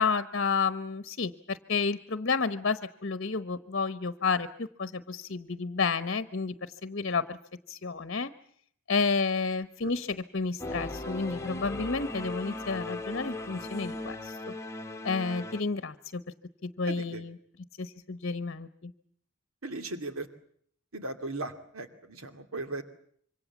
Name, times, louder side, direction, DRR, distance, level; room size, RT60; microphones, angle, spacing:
voice 1, 0.0-7.4 7.7-8.3 8.9-14.5 15.0-16.2 16.6-17.4 17.8-18.9, left 4 dB, 50° left, 13 dB, 1.0 m, -31 dB
Singing / Musical instrument, 10.6-15.6, left 2 dB, 15° left, 1.3 m, -38 dB
voice 2, 16.9-17.2 19.6-20.3 20.9-22.8, right 2 dB, 70° right, 8 dB, 2.5 m, -37 dB
26.5 x 24.5 x 7.3 m, 0.64 s
head